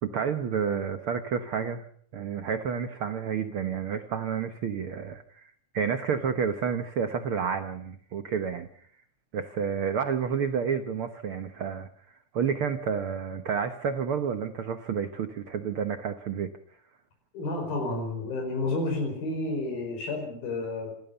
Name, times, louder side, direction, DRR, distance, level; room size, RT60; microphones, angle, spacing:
voice 1, 0.0-1.8 2.1-8.7 9.3-11.9 12.3-16.5, right 7 dB, 85° right, 9 dB, 1.2 m, -30 dB
voice 2, 17.3-20.9, left 2 dB, 85° left, 4 dB, 6.8 m, -30 dB
27.0 x 14.5 x 6.9 m, 0.62 s
omnidirectional pair, 4.1 m